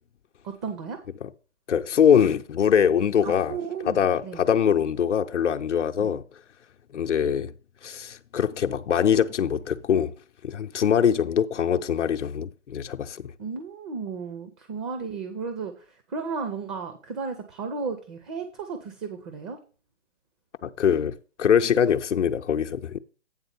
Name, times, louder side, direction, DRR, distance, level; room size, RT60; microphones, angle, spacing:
voice 1, 0.4-1.0 3.2-4.4 6.0-6.1 13.4-19.6, right 5 dB, 25° right, 0.8 m, -34 dB
voice 2, 1.7-3.6 3.9-6.2 6.9-7.5 7.8-10.1 10.4-13.3 20.6-23.0, left 8 dB, 80° left, 0.7 m, -23 dB
8.9 x 3.7 x 6.8 m
hypercardioid pair, 140°, 35 cm